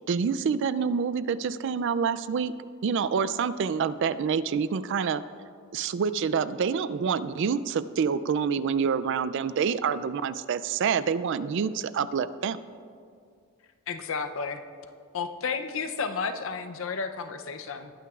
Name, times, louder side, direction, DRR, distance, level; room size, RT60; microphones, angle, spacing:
voice 1, 0.1-2.5 2.8-5.2 5.7-12.6, right 6 dB, 55° right, 15 dB, 0.3 m, -27 dB
voice 2, 13.9-14.6 15.1-17.9, left 5 dB, 60° left, 8 dB, 0.6 m, -32 dB
20.0 x 9.0 x 2.4 m, 2.2 s
head